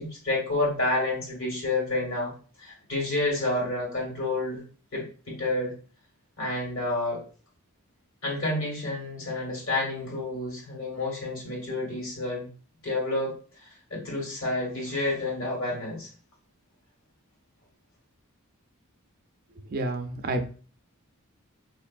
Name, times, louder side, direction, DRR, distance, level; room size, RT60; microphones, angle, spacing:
voice 1, 0.0-2.3 2.6-4.6 4.9-5.7 6.4-7.2 8.2-12.5 12.8-13.3 13.6-16.1, left 2 dB, 65° left, -1 dB, 1.8 m, -29 dB
voice 2, 19.7-20.5, right 2 dB, 40° right, 6 dB, 0.4 m, -29 dB
3.9 x 3.0 x 2.5 m, 0.39 s
head